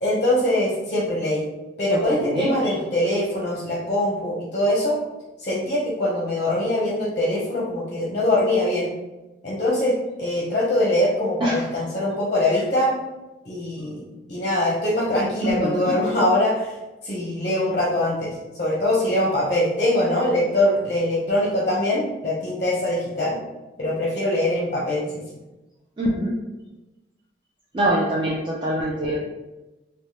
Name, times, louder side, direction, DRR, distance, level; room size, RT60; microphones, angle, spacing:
voice 1, 0.0-1.4 1.8-5.0 5.4-8.9 9.4-12.9 13.5-16.7 17.0-18.3 18.6-23.4 23.8-25.2, left 1 dB, 40° left, -5 dB, 0.6 m, -23 dB
voice 2, 1.9-2.7 11.4-11.5 15.4-15.9 26.0-26.3 27.7-29.2, right 1 dB, 25° right, -5 dB, 0.3 m, -24 dB
3.2 x 2.1 x 2.8 m, 1.0 s
head